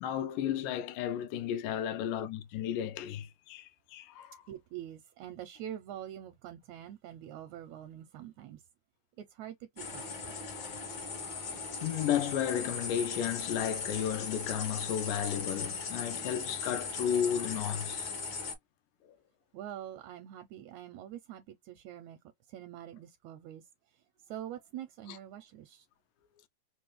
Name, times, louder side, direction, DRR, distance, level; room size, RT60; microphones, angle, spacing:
voice 1, 0.0-4.4 10.5-10.7 11.2-11.3 11.8-18.1 25.1-25.2, left 9 dB, 85° left, 2.2 m, -33 dB
voice 2, 4.5-8.6 9.2-9.5 9.9-10.0 19.5-22.2 22.5-23.6 24.3-25.8, right 11 dB, 80° right, 1.7 m, -45 dB
sound 1, 9.8-18.5, left 4 dB, 60° left, 1.2 m, -38 dB
5.1 x 2.1 x 3.0 m
omnidirectional pair, 3.7 m